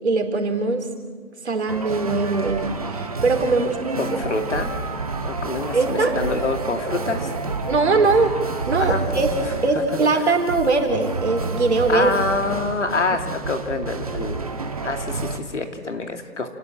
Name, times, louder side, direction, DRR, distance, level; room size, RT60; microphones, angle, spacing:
voice 1, 0.0-0.9 1.4-4.2 5.7-6.2 7.7-8.4 8.7-9.3 9.6-12.1 13.1-13.2, right 3 dB, 45° right, 4 dB, 3.8 m, -21 dB
sound 1, 1.7-15.4, right 3 dB, 25° right, 1.5 m, -29 dB
voice 2, 4.0-4.7 5.2-7.3 8.8-9.0 9.4-9.5 10.2-10.3 11.9-14.4 14.8-16.5, left 3 dB, 45° left, 5 dB, 2.7 m, -26 dB
30.0 x 18.5 x 7.5 m, 1.5 s
hypercardioid pair, 175°, 48 cm